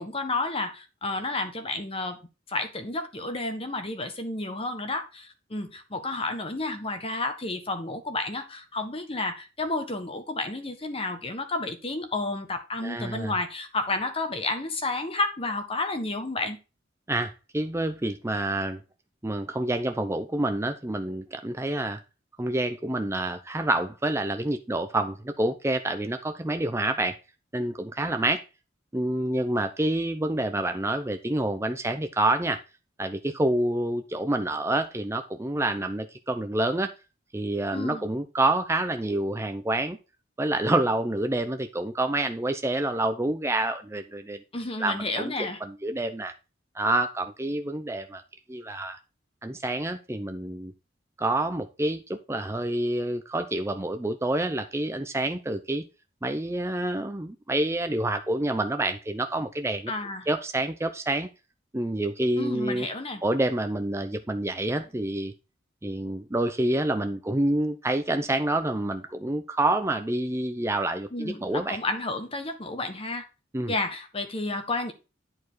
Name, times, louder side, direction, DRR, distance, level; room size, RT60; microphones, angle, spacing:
voice 1, 0.0-2.2 2.5-16.6 37.7-38.0 44.5-45.6 59.9-60.3 62.4-63.2 71.1-73.2 73.7-74.9, left 2 dB, 30° left, 1.4 m, -31 dB
voice 2, 12.8-13.3 17.1-18.8 19.2-22.0 22.4-27.2 27.5-28.4 28.9-32.6 33.0-36.9 37.3-40.0 40.4-44.4 44.8-45.3 45.6-46.3 46.7-48.2 48.5-49.0 49.4-50.7 51.2-55.9 56.2-59.9 60.3-61.3 61.7-62.9 63.2-65.3 65.8-71.8 73.5-73.7, right 1 dB, 15° right, 0.6 m, -27 dB
10.5 x 4.7 x 4.6 m
head